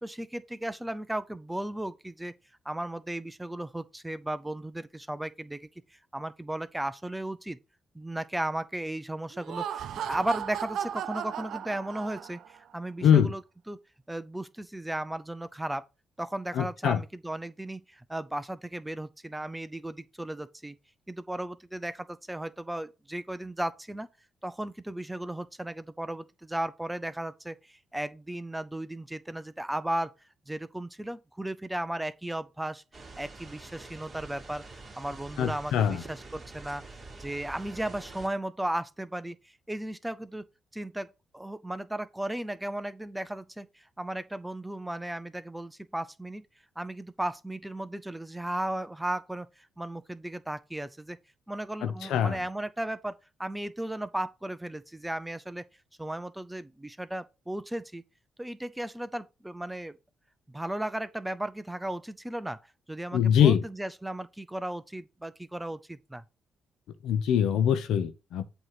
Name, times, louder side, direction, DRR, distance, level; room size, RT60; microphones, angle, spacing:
voice 1, 0.0-2.3 2.6-7.6 7.9-13.4 13.7-13.8 14.1-15.8 16.2-20.8 21.1-24.1 24.4-30.1 30.5-32.8 33.2-36.8 37.2-40.4 40.7-46.5 46.8-51.2 51.5-55.6 56.0-58.0 58.4-60.0 60.5-62.6 62.9-66.2, right 1 dB, 10° right, 0.6 m, -35 dB
Laughter, 9.3-12.6, right 9 dB, 70° right, 0.6 m, -36 dB
voice 2, 13.0-13.3 16.5-17.0 35.4-36.0 51.8-52.4 63.1-63.6 67.0-68.5, left 9 dB, 80° left, 0.9 m, -23 dB
sound 1, 32.9-38.3, right 3 dB, 25° right, 2.6 m, -46 dB
7.9 x 3.1 x 5.8 m
cardioid pair, 90°, 0 cm